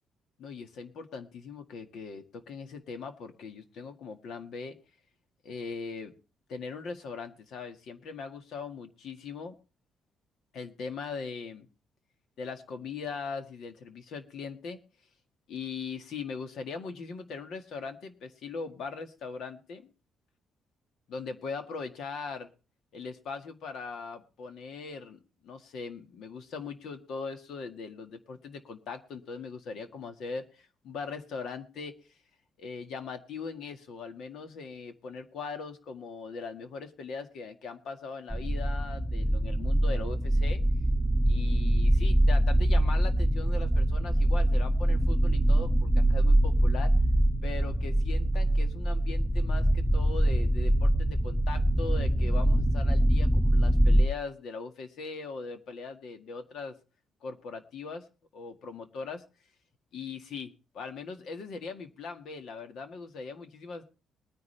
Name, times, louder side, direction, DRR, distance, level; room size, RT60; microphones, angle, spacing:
voice 1, 0.4-4.8 5.4-6.1 6.5-9.6 10.5-11.7 12.4-14.8 15.5-19.9 21.1-22.5 22.9-31.9 32.6-40.6 41.3-46.9 47.4-56.7 57.2-58.0 58.3-59.2 59.9-63.8, left 4 dB, 75° left, 7 dB, 1.8 m, -40 dB
sound 1, 38.3-54.1, right 1 dB, ahead, 3.4 m, -24 dB
21.0 x 9.8 x 3.3 m, 0.33 s
cardioid pair, 90°, 0 cm